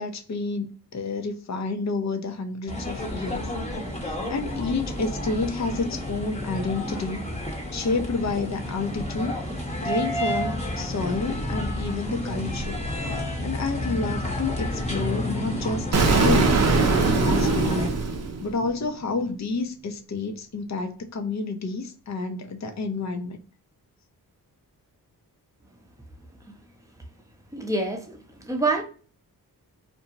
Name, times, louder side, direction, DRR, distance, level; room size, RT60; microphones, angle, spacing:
voice 1, 0.0-3.5 4.0-7.2 7.7-9.4 9.8-12.8 13.4-16.6 17.0-17.9 18.4-23.4, left 3 dB, 45° left, 0.7 m, -29 dB
sound 1, 2.7-17.9, left 1 dB, 15° left, 0.9 m, -30 dB
Explosion, 15.9-18.8, right 4 dB, 45° right, 0.6 m, -21 dB
voice 2, 27.5-28.2 28.4-28.8, right 2 dB, 10° right, 0.7 m, -25 dB
2.6 x 2.2 x 2.8 m
cardioid pair, 60°, 38 cm